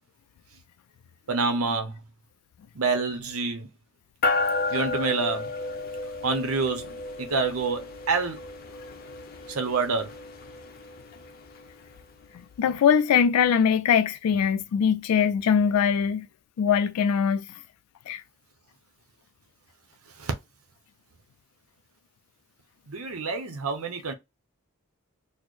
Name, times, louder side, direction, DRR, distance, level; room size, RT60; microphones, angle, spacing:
voice 1, 1.3-2.0 2.7-3.7 4.7-5.5 6.2-8.4 9.5-10.2 20.2-20.3 22.9-24.1, right 4 dB, 75° right, 0.7 m, -27 dB
sound 1, 4.2-11.9, left 3 dB, 40° left, 0.6 m, -32 dB
voice 2, 12.6-16.3 16.6-17.4 18.1-18.2, left 7 dB, 85° left, 0.3 m, -22 dB
4.3 x 2.1 x 3.1 m
head